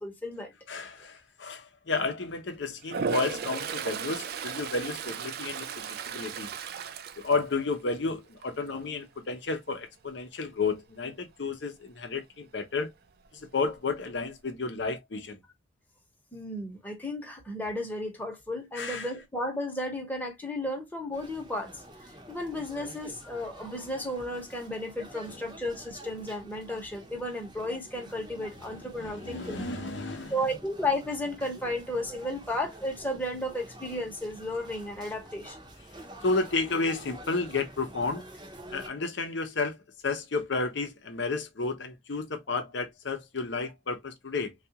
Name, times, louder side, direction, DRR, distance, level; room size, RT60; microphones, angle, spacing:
voice 1, 0.0-0.5 16.3-29.6 30.3-35.6, left 1 dB, 10° left, 0.9 m, -34 dB
voice 2, 0.7-6.5 7.2-12.9 13.3-15.4 18.7-19.1 25.3-25.4 29.0-30.3 36.2-38.3 38.7-39.8 40.0-44.5, left 3 dB, 65° left, 0.7 m, -32 dB
Toilet flush, 2.8-8.0 8.4-8.8 13.3-13.4 13.6-14.4, right 6 dB, 50° right, 0.3 m, -36 dB
sound 1, 21.1-38.9, right 1 dB, 20° right, 0.7 m, -48 dB
3.5 x 2.4 x 2.8 m
head